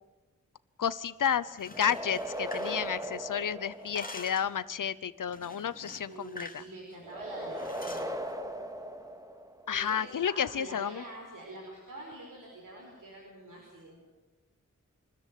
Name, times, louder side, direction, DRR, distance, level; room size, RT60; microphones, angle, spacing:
voice 1, 0.8-6.6 9.7-11.0, left 8 dB, 80° left, 17 dB, 0.8 m, -31 dB
sound 1, 1.5-3.4 3.7-4.6 5.3-6.6 6.9-7.1 7.6-8.1, left 2 dB, 25° left, 2.4 m, -47 dB
sound 2, 1.7-4.5 7.0-9.8, equal, 10° right, 2.2 m, -38 dB
voice 2, 5.7-8.2 9.7-14.0, right 1 dB, 85° right, -2 dB, 5.1 m, -46 dB
25.0 x 14.0 x 9.4 m, 1.2 s
cardioid pair, 40°, 31 cm